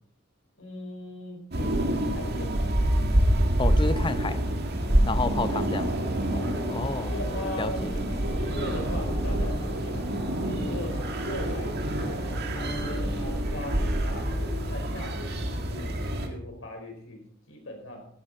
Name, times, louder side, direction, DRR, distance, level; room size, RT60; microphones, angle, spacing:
voice 1, 0.6-2.7 4.8-5.8 6.3-6.7 7.1-7.9 8.3-12.2 12.5-18.1, left 1 dB, 85° left, 3 dB, 4.6 m, -40 dB
sound 1, 1.5-16.3, right 1 dB, 55° right, 1.9 m, -27 dB
voice 2, 3.6-4.4 5.0-5.9 6.7-7.1 7.6-7.9, left 3 dB, 25° left, 13 dB, 0.7 m, -30 dB
sound 2, 5.1-14.8, left 1 dB, 40° left, 3.3 m, -41 dB
15.5 x 10.5 x 4.2 m, 0.65 s
head